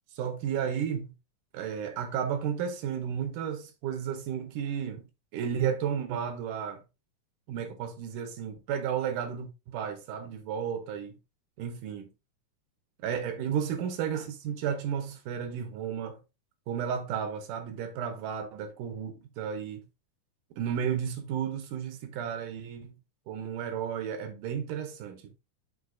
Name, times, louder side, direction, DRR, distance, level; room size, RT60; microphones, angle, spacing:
voice 1, 0.1-1.1 1.5-5.1 5.3-6.8 7.5-11.2 11.6-12.1 13.0-16.2 16.7-19.9 20.6-23.0 23.3-25.3, right 8 dB, 85° right, 2.4 m, -33 dB
9.8 x 4.0 x 2.6 m
omnidirectional pair, 3.6 m